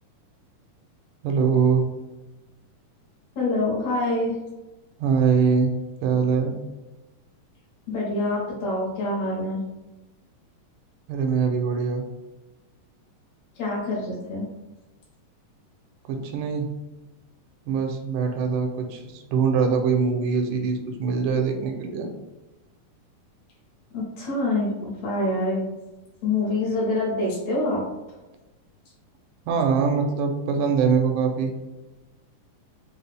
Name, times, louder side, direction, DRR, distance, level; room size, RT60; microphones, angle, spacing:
voice 1, 1.2-1.9 5.0-5.7 6.0-6.6 11.1-12.0 16.1-16.7 17.7-22.1 29.5-31.5, right 5 dB, 80° right, 4 dB, 2.2 m, -23 dB
voice 2, 3.4-4.4 7.9-9.6 13.6-14.5 23.9-25.6 26.2-27.9, left 2 dB, 65° left, -4 dB, 2.2 m, -26 dB
5.2 x 2.3 x 3.3 m, 1.1 s
omnidirectional pair, 3.9 m